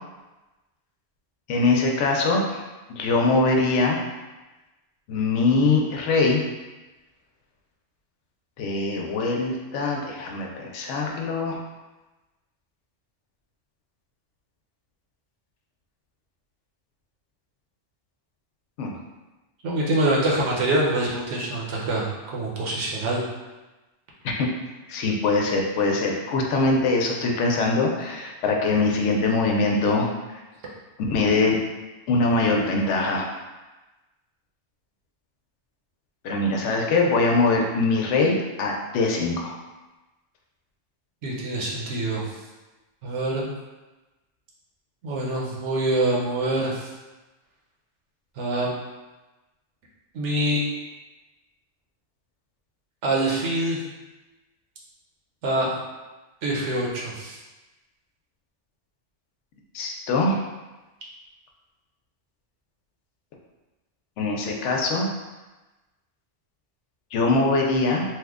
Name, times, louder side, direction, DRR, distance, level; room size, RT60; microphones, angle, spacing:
voice 1, 1.5-2.6 2.9-4.0 5.1-6.4 8.6-11.6 18.8-18.9 24.2-24.5 24.9-30.1 31.0-31.6 32.1-33.3 36.2-39.5 59.7-60.4 64.2-65.1 67.1-68.0, left 3 dB, 80° left, 0 dB, 0.9 m, -22 dB
voice 2, 19.6-23.2 41.2-42.4 43.0-43.5 45.0-46.9 48.4-48.7 50.1-50.6 53.0-53.8 55.4-55.7 56.4-57.4, right 1 dB, 80° right, -3 dB, 1.1 m, -25 dB
3.0 x 2.1 x 3.5 m, 1.1 s
omnidirectional pair, 1.2 m